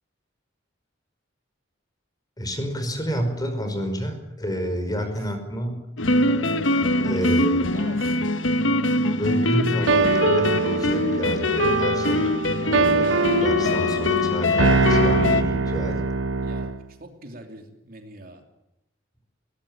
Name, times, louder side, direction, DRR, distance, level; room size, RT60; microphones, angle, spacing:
voice 1, 2.4-5.8 7.0-7.7 9.1-12.3 12.6-16.0, equal, 20° left, 6 dB, 5.2 m, -29 dB
voice 2, 5.0-5.3 7.0-8.2 16.4-18.4, right 2 dB, 50° right, 4 dB, 3.0 m, -44 dB
sound 1, 6.0-15.4, left 2 dB, 75° left, 1.3 m, -23 dB
sound 2, 9.9-16.8, right 4 dB, 80° right, 0.9 m, -23 dB
21.0 x 19.0 x 8.9 m, 0.89 s
head